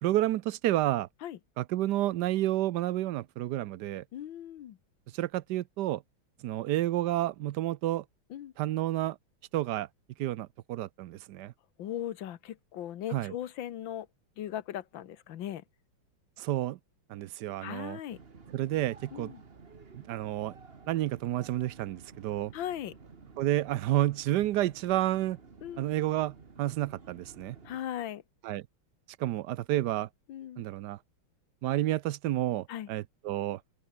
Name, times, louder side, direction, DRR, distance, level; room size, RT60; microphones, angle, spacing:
voice 1, 0.0-1.1 1.6-4.0 5.1-6.0 6.4-8.0 8.6-9.2 9.5-9.9 10.2-11.5 13.1-13.3 16.4-16.8 17.1-18.0 18.5-19.3 19.9-20.6 20.9-22.5 23.4-25.4 25.8-27.6 28.4-28.7 29.2-30.1 30.6-31.0 31.6-33.6, right 14 dB, 70° right, 1.0 m, -30 dB
voice 2, 4.1-4.8 8.3-8.5 11.8-14.1 14.4-15.6 17.6-18.2 19.1-19.4 22.5-22.9 25.6-25.9 27.7-28.2 30.3-30.6 32.7-32.9, left 11 dB, 65° left, 1.7 m, -38 dB
sound 1, 18.1-27.8, right 4 dB, 30° right, 1.7 m, -53 dB
open air
omnidirectional pair, 2.4 m